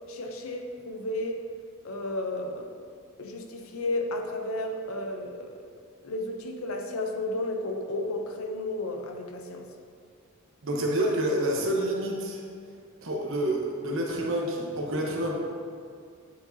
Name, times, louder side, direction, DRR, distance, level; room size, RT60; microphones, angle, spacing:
voice 1, 0.1-1.4 1.8-2.8 3.2-5.6 6.0-9.7, left 1 dB, 70° left, 4 dB, 0.6 m, -33 dB
voice 2, 10.6-12.4 13.0-15.3, right 1 dB, 65° right, -1 dB, 0.9 m, -28 dB
8.3 x 4.7 x 2.7 m, 2.2 s
head